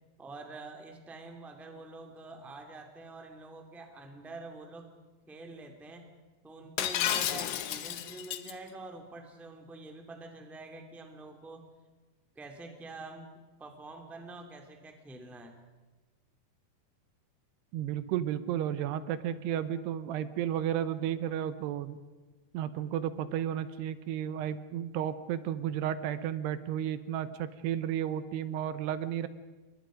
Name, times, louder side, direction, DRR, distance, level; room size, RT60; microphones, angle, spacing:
voice 1, 0.2-4.9 5.3-6.1 6.4-11.6 12.4-13.3 13.6-15.6, right 2 dB, ahead, 3 dB, 1.6 m, -46 dB
Shatter, 6.8-8.5, left 11 dB, 70° left, 1.9 m, -31 dB
voice 2, 17.7-22.0 22.5-29.3, right 10 dB, 80° right, 13 dB, 2.9 m, -33 dB
29.0 x 23.5 x 5.2 m, 1.2 s
omnidirectional pair, 4.8 m